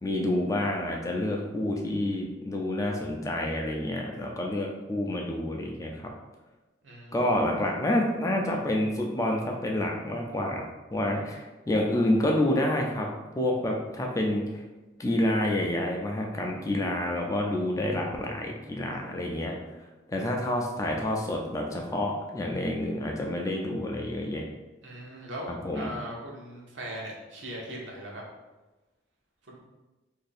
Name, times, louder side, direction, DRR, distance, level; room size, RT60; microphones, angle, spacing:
voice 1, 0.0-6.1 7.1-14.6 15.0-19.5 20.1-24.4 25.5-25.9, left 1 dB, 15° left, 0 dB, 0.4 m, -28 dB
voice 2, 6.8-7.3 24.8-28.2 29.5-29.6, right 1 dB, 85° right, -2 dB, 0.9 m, -39 dB
2.7 x 2.6 x 4.1 m, 1.1 s
head